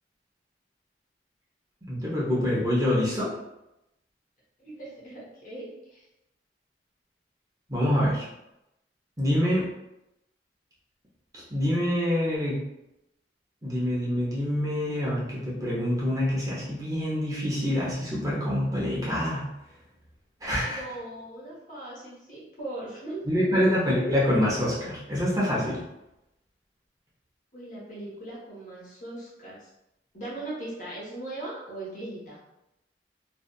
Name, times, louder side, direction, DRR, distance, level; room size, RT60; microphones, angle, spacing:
voice 1, 1.9-3.3 7.7-8.2 9.2-9.7 11.3-12.6 13.6-19.5 20.4-20.8 23.3-25.8, equal, 20° right, -7 dB, 0.6 m, -26 dB
voice 2, 4.6-6.1 20.6-23.2 23.5-23.6 27.5-29.7 30.1-32.4, right 2 dB, 45° left, -6 dB, 0.9 m, -39 dB
2.6 x 2.3 x 2.2 m, 0.89 s
head